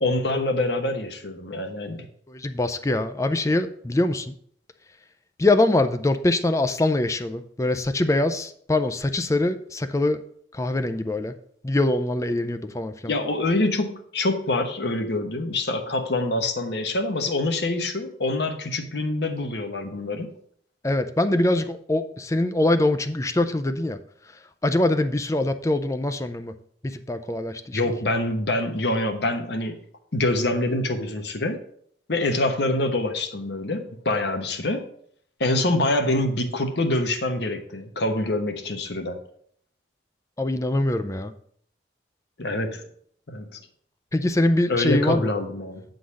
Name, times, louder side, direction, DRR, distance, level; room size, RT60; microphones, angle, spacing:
voice 1, 0.0-2.1 13.1-20.3 27.7-29.7 30.1-31.6 32.1-34.9 35.4-39.2 42.4-42.8 43.3-43.6 44.7-45.8, left 2 dB, 70° left, 6 dB, 1.0 m, -25 dB
voice 2, 2.3-4.3 5.4-10.2 10.5-11.3 11.6-13.1 20.8-24.0 24.6-26.5 26.8-27.8 40.4-41.3 44.1-45.3, left 2 dB, 15° left, 10 dB, 0.4 m, -23 dB
8.2 x 3.9 x 6.3 m, 0.63 s
head